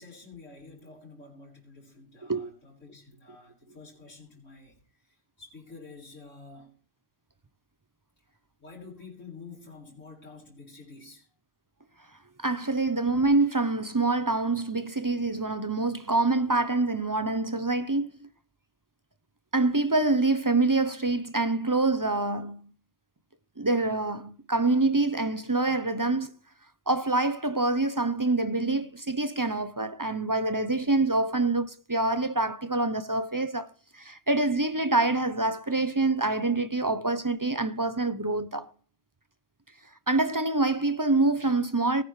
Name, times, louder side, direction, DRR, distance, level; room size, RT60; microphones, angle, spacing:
voice 1, 0.0-4.8 5.0-6.7 8.6-11.3, left 4 dB, 85° left, 4.6 m, -48 dB
voice 2, 12.4-18.3 19.5-22.6 23.6-26.3 26.9-33.7 34.0-38.7 40.1-42.0, right 2 dB, 20° right, 0.5 m, -26 dB
19.0 x 10.5 x 3.2 m
omnidirectional pair, 1.3 m